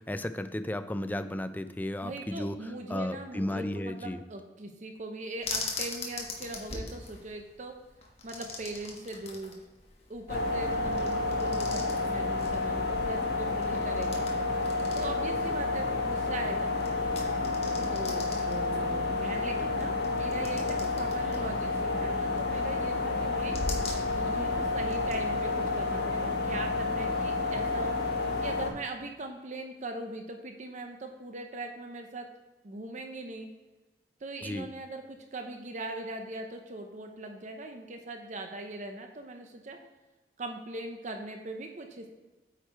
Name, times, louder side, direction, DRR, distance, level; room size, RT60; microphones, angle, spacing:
voice 1, 0.0-2.6 2.9-4.2 34.4-34.7, left 1 dB, 10° left, 10 dB, 0.4 m, -34 dB
voice 2, 2.0-7.7 8.2-9.6 10.1-14.2 14.9-16.7 17.9-23.6 24.1-27.9 28.4-32.3 32.6-33.5 34.2-39.8 40.4-42.2, right 2 dB, 45° right, 4 dB, 0.7 m, -40 dB
sound 1, 5.4-25.2, left 3 dB, 35° left, 1.4 m, -42 dB
sound 2, 10.3-28.7, left 3 dB, 60° left, 1.4 m, -30 dB
8.9 x 4.8 x 4.5 m, 1.2 s
head